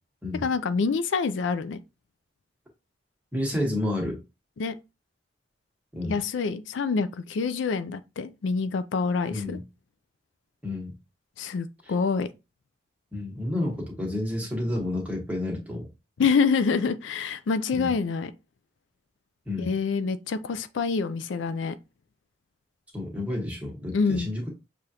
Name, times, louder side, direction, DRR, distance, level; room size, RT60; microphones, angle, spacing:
voice 1, 0.4-1.8 4.6-4.8 6.0-9.6 11.4-12.3 16.2-18.3 19.6-21.8 23.9-24.3, left 5 dB, 80° left, 0.4 m, -26 dB
voice 2, 3.3-4.2 5.9-6.1 9.3-9.6 10.6-10.9 13.1-15.9 17.7-17.9 19.5-19.7 22.9-24.5, left 1 dB, 10° right, 1.3 m, -30 dB
6.7 x 2.5 x 2.8 m
head